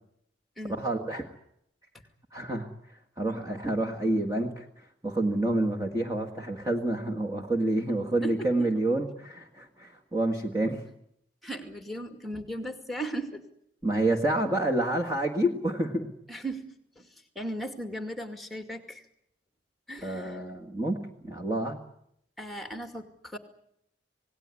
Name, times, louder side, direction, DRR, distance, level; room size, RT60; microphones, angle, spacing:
voice 1, 0.6-1.3 2.3-2.7 3.2-10.8 13.8-16.1 20.0-21.8, right 1 dB, 15° right, 1 dB, 1.8 m, -28 dB
voice 2, 11.4-13.4 16.3-16.6 17.0-17.1 17.4-19.0 19.9-20.4 22.4-23.4, right 1 dB, ahead, 6 dB, 2.3 m, -37 dB
27.0 x 18.5 x 9.8 m, 0.77 s
head